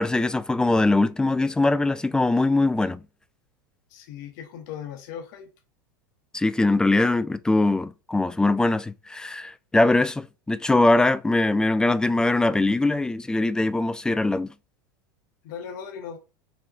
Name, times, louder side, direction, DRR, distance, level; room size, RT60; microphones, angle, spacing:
voice 1, 0.0-3.0 6.3-14.5, left 2 dB, 5° left, 0.3 m, -22 dB
voice 2, 3.9-5.5 15.4-16.2, left 8 dB, 60° left, 1.0 m, -38 dB
5.1 x 3.4 x 2.4 m
hypercardioid pair, 85°, 12 cm